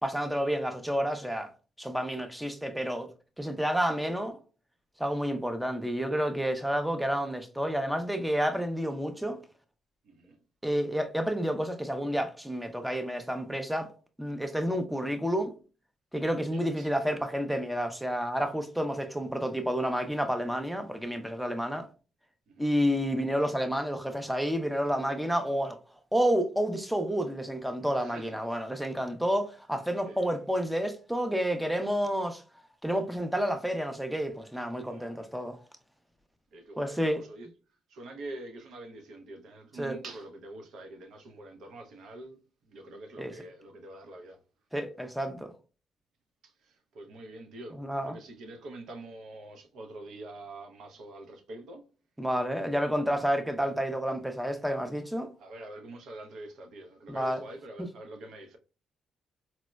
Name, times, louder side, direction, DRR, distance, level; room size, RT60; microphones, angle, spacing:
voice 1, 0.0-1.5 1.8-3.1 3.4-4.4 5.0-9.4 10.6-13.9 14.2-15.5 16.1-21.9 22.6-25.8 26.1-32.4 32.8-35.6 36.8-37.2 39.8-40.0 43.2-43.3 44.7-45.5 47.8-48.1 52.2-55.3 57.1-57.4, equal, 5° right, 0.5 m, -30 dB
voice 2, 10.0-10.4 16.5-16.9 22.5-22.7 28.0-28.4 30.0-30.3 34.9-35.2 36.5-37.5 37.9-44.4 46.4-51.8 55.4-58.6, right 2 dB, 75° right, 0.5 m, -45 dB
4.1 x 2.0 x 2.2 m
cardioid pair, 90°, 0 cm